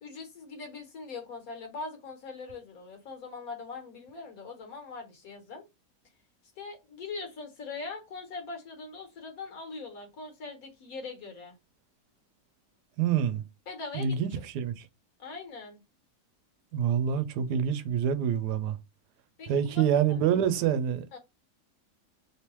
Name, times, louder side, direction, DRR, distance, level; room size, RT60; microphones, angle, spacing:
voice 1, 0.0-5.7 6.6-11.5 13.7-14.2 15.2-15.8 19.4-20.2 21.1-21.2, left 4 dB, 65° left, 1.4 m, -41 dB
voice 2, 13.0-13.4 13.9-14.9 16.7-18.8 19.5-21.1, right 8 dB, 90° right, 1.2 m, -26 dB
3.2 x 3.1 x 3.0 m
omnidirectional pair, 1.7 m